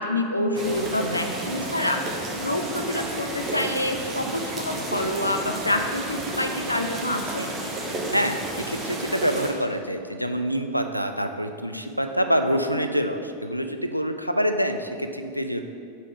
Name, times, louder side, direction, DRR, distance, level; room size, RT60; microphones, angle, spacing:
voice 1, 0.0-2.0 2.4-7.5, left 1 dB, 85° left, 5 dB, 0.4 m, -27 dB
sound 1, 0.5-9.5, right 1 dB, 20° right, 0.9 m, -32 dB
voice 2, 8.1-15.6, equal, 90° right, 6 dB, 0.3 m, -26 dB
5.1 x 4.0 x 5.0 m, 2.4 s
figure-of-eight pair, 90°, 0 cm